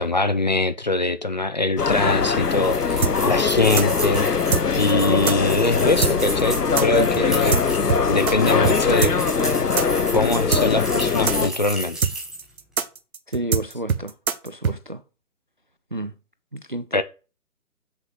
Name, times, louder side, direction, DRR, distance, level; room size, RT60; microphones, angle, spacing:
voice 1, 0.0-4.3 4.8-7.8 8.1-9.1 9.4-9.5 10.1-12.0 16.9-17.0, left 2 dB, 30° left, 0.5 m, -23 dB
sound 1, 1.8-11.5, left 5 dB, 90° left, 1.3 m, -22 dB
sound 2, 2.4-12.5, right 2 dB, ahead, 0.9 m, -34 dB
sound 3, 3.0-8.3 8.6-8.8 9.0-14.8, right 6 dB, 65° right, 1.3 m, -23 dB
voice 2, 13.3-14.1 14.4-15.0 15.9-16.1 16.5-17.0, right 1 dB, 35° right, 0.4 m, -31 dB
7.9 x 6.7 x 7.3 m
figure-of-eight pair, 150°, 45 cm